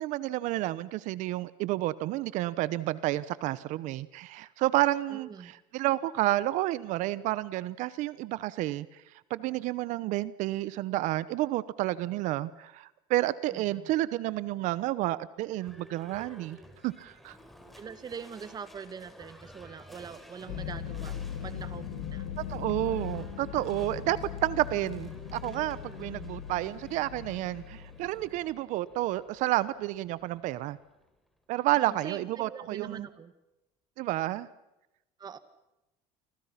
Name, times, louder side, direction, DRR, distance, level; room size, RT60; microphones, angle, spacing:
voice 1, 0.0-8.9 9.3-16.6 16.8-17.4 22.5-30.8 31.5-33.1 34.0-34.5, right 16 dB, 60° right, 18 dB, 0.9 m, -30 dB
voice 2, 5.1-5.5 13.5-13.9 17.8-21.1 21.4-22.3 26.0-26.3 31.8-33.3 35.2-35.4, right 6 dB, 30° right, 12 dB, 2.0 m, -43 dB
Livestock farm animals working animals / Bell, 15.5-31.4, equal, ahead, 3.9 m, -54 dB
sound 1, 20.5-28.4, left 9 dB, 70° left, 2.7 m, -39 dB
29.5 x 25.5 x 5.9 m, 0.94 s
cardioid pair, 125°, 14 cm